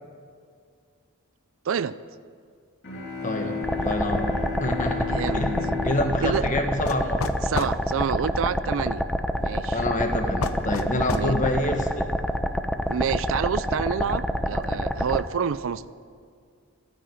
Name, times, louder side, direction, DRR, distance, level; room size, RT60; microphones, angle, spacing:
voice 1, 1.7-2.0 5.1-5.4 6.2-6.5 7.5-9.0 9.4-9.8 11.1-11.4 12.9-15.9, right 7 dB, 65° right, 17 dB, 0.4 m, -28 dB
sound 1, 2.8-7.5, left 4 dB, 60° left, 3.5 m, -34 dB
voice 2, 3.2-7.3 9.7-12.0, left 1 dB, 35° left, 4 dB, 1.6 m, -27 dB
sound 2, 3.6-15.2, equal, 5° left, 0.7 m, -27 dB
sound 3, 6.9-7.8 10.4-11.3, left 4 dB, 90° left, 0.8 m, -30 dB
14.0 x 9.8 x 9.4 m, 2.1 s
head